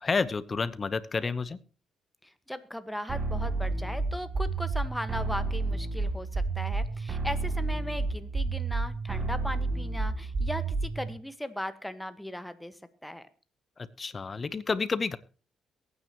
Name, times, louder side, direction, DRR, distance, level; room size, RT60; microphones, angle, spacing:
voice 1, 0.0-1.6 14.0-15.2, left 4 dB, 35° left, 16 dB, 0.9 m, -30 dB
voice 2, 2.2-13.2, equal, 5° left, 10 dB, 1.5 m, -38 dB
sound 1, 3.1-11.1, right 3 dB, 45° right, 2.5 m, -30 dB
22.5 x 9.5 x 3.0 m, 0.39 s
cardioid pair, 90°, 0 cm